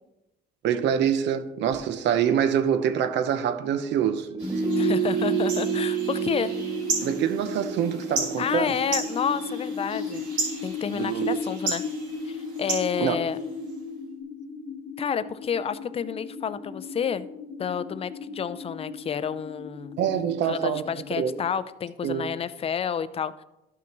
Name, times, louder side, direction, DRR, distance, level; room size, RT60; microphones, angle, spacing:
voice 1, 0.6-4.3 7.0-8.8 10.9-11.5 13.0-13.2 20.0-20.9 21.2-21.3 22.0-22.3, right 9 dB, 70° right, 0.7 m, -25 dB
sound 1, 4.3-9.5 9.8-9.9, right 5 dB, 20° right, 2.2 m, -28 dB
sound 2, 4.4-13.8, right 3 dB, 90° right, 3.2 m, -35 dB
voice 2, 4.7-6.5 8.4-10.3 10.6-11.8 12.3-13.4 15.0-17.3 17.6-20.0 20.4-23.4, left 7 dB, 30° left, 0.4 m, -30 dB
sound 3, 6.5-21.5, left 4 dB, 60° left, 0.8 m, -36 dB
12.5 x 5.9 x 3.0 m
cardioid pair, 115°, 19 cm